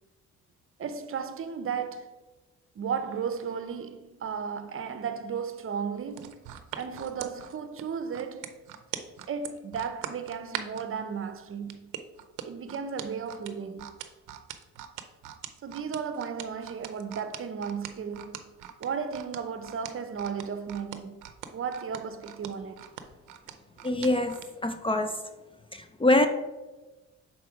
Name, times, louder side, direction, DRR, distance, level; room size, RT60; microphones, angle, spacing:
voice 1, 0.8-2.1 2.7-6.4 6.8-8.6 9.3-11.9 12.4-13.9 15.6-18.4 18.8-21.2 21.5-22.9, right 6 dB, 45° right, 0.7 m, -34 dB
sound 1, 6.1-10.9 11.7-24.5 24.9-25.1, right 11 dB, 85° right, 0.6 m, -41 dB
voice 2, 23.8-25.2 25.7-26.3, left 2 dB, 20° left, 0.4 m, -25 dB
5.9 x 4.3 x 4.8 m
cardioid pair, 90°, 30 cm